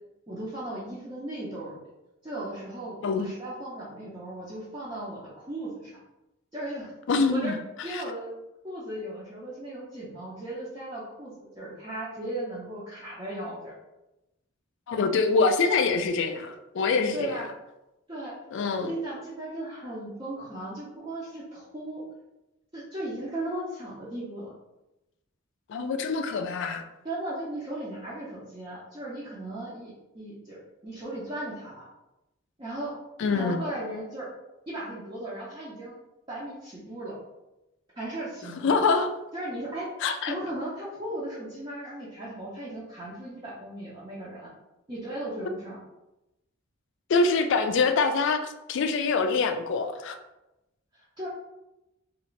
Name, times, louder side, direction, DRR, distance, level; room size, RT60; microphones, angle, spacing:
voice 1, 0.3-1.8 2.2-5.9 6.5-6.9 7.3-7.5 7.8-8.3 8.6-13.7 17.1-17.5 18.1-18.3 18.8-22.0 22.7-24.5 27.0-31.9 32.6-32.9 33.3-34.3 34.7-35.9 36.3-37.2 37.9-38.8 39.3-39.9 40.3-44.5 44.9-45.8 51.2-51.3, right 1 dB, 25° right, 0.6 m, -36 dB
voice 2, 7.1-7.6 7.9-8.0 14.9-17.3 18.5-18.9 25.7-26.8 33.2-33.6 38.6-39.1 40.0-40.3 47.1-50.2, left 4 dB, 60° left, 0.3 m, -25 dB
2.6 x 2.4 x 3.1 m
head